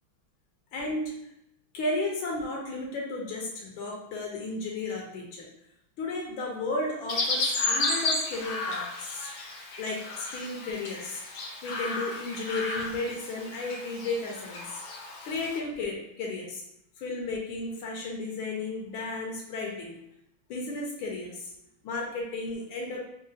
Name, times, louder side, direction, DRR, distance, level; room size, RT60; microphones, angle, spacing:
voice 1, 0.7-1.3 1.7-5.5 6.0-9.3 9.8-11.2 11.6-14.8 15.2-16.6 17.0-20.0 20.5-21.5 21.8-23.0, left 2 dB, 85° left, -1 dB, 1.5 m, -34 dB
Chirp tweet, 7.1-15.6, left 3 dB, 70° left, 0.9 m, -33 dB
3.8 x 2.4 x 2.6 m, 0.81 s
omnidirectional pair, 2.2 m